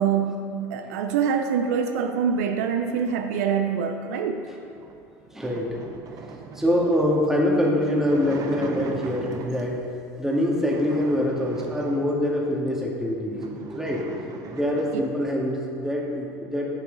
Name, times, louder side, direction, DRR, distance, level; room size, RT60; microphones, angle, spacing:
voice 1, 0.0-4.5 14.9-15.0, right 7 dB, 80° right, 6 dB, 0.6 m, -25 dB
sound 1, 4.7-9.9 10.5-12.5 13.0-13.1 13.3-15.2, right 4 dB, 45° right, 0.9 m, -39 dB
voice 2, 5.3-5.8 6.5-9.8 10.2-14.1 14.5-16.6, left 1 dB, 5° right, -2 dB, 2.0 m, -24 dB
9.9 x 7.3 x 4.0 m, 2.5 s
hypercardioid pair, 85°, 8 cm